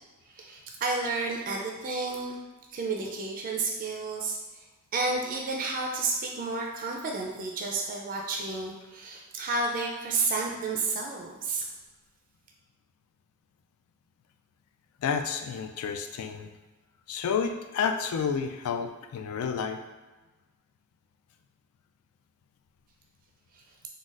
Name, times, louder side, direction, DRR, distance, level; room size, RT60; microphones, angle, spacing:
voice 1, 0.3-2.4 2.7-4.4 4.9-11.6, right 3 dB, 40° right, 0 dB, 0.3 m, -31 dB
voice 2, 15.0-16.5 17.1-19.8, left 6 dB, 80° left, 7 dB, 0.3 m, -30 dB
3.9 x 2.2 x 2.4 m, 1.2 s
head